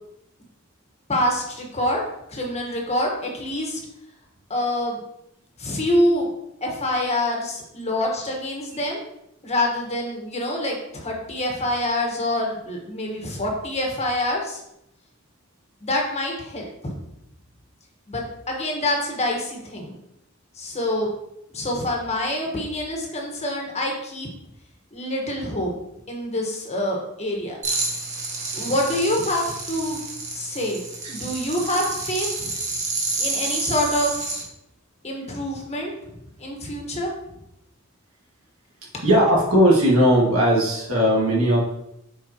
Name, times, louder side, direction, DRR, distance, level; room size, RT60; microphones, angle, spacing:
voice 1, 1.1-2.0 2.3-3.8 4.5-5.0 5.6-6.3 6.6-9.0 9.4-14.6 15.8-16.9 18.1-19.9 20.6-21.1 21.5-24.3 24.9-25.7 26.1-27.6 28.5-30.0 30.3-30.8 31.1-32.5 33.2-34.4 35.0-35.9 36.4-37.1, left 1 dB, 30° left, 0 dB, 1.4 m, -26 dB
sound 1, 27.6-34.4, right 3 dB, 35° right, 1.5 m, -29 dB
voice 2, 39.0-41.6, equal, 90° right, -3 dB, 2.1 m, -18 dB
7.5 x 4.9 x 3.0 m, 0.81 s
head